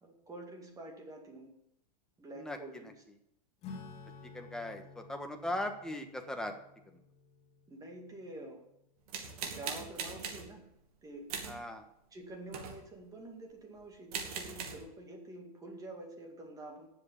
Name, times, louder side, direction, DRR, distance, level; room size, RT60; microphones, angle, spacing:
voice 1, 0.0-1.5 2.2-3.0 7.7-8.6 9.4-10.7 11.0-11.3 12.1-16.9, right 2 dB, 15° right, 2 dB, 2.4 m, -47 dB
voice 2, 2.4-2.9 4.2-6.5 6.9-7.0 11.4-11.8, left 1 dB, 5° left, 3 dB, 1.3 m, -39 dB
Acoustic guitar / Strum, 3.6-9.5, left 4 dB, 30° left, 2.7 m, -53 dB
sound 1, 9.1-10.5 11.3-11.6 12.5-12.9 13.8-13.9 14.1-14.8, right 6 dB, 70° right, 2.6 m, -40 dB
10.5 x 7.4 x 7.2 m, 0.81 s
supercardioid pair, 140°, 20 cm